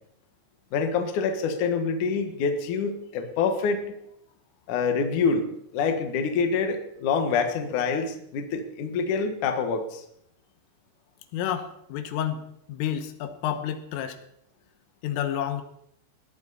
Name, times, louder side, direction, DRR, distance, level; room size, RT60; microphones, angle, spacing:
voice 1, 0.7-3.9 4.7-5.5 5.7-10.0, left 5 dB, 60° left, 6 dB, 2.1 m, -26 dB
voice 2, 11.3-14.2 15.0-15.6, left 10 dB, 80° left, 9 dB, 3.7 m, -30 dB
20.5 x 16.5 x 4.2 m, 0.74 s
omnidirectional pair, 6.0 m